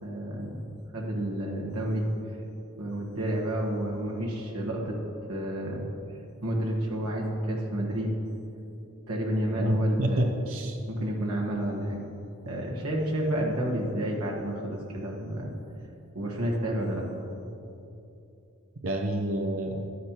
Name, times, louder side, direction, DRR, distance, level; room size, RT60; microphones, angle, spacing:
voice 1, 0.0-0.6 0.9-2.1 2.8-5.0 5.3-5.9 6.4-8.2 9.1-10.3 10.9-12.0 12.4-15.5 16.1-17.1, right 1 dB, 85° right, -2 dB, 1.3 m, -30 dB
voice 2, 9.5-10.8 18.8-19.8, right 1 dB, 65° right, 2 dB, 0.6 m, -28 dB
12.0 x 9.3 x 3.0 m, 2.8 s
head